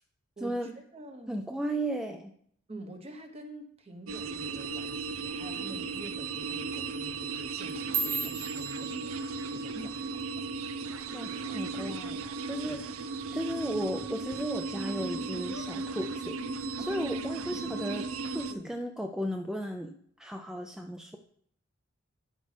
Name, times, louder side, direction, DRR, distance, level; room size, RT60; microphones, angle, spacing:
voice 1, 0.4-1.4 2.7-9.2 9.5-10.5 11.3-11.4 12.6-13.0 16.8-17.8 18.5-18.7, right 1 dB, 30° right, 5 dB, 1.0 m, -47 dB
voice 2, 1.3-2.3 9.8-9.9 11.1-16.4 16.8-19.9 20.2-21.2, equal, 5° right, 4 dB, 0.4 m, -35 dB
sound 1, 4.1-18.5, right 4 dB, 85° right, 0.5 m, -36 dB
sound 2, 7.5-11.9 12.2-12.6 13.0-13.4 13.8-14.0 14.6-15.0 15.4-16.2 16.6-17.0 17.8-17.9, right 5 dB, 50° right, 0.7 m, -38 dB
sound 3, 9.3-9.4 9.9-10.0 11.0-11.1 11.4-11.5 11.9-12.0 13.7-14.4 14.9-15.0 15.4-15.7 16.6-16.7 16.9-17.0, left 4 dB, 60° left, 0.7 m, -50 dB
12.5 x 5.4 x 3.3 m, 0.66 s
head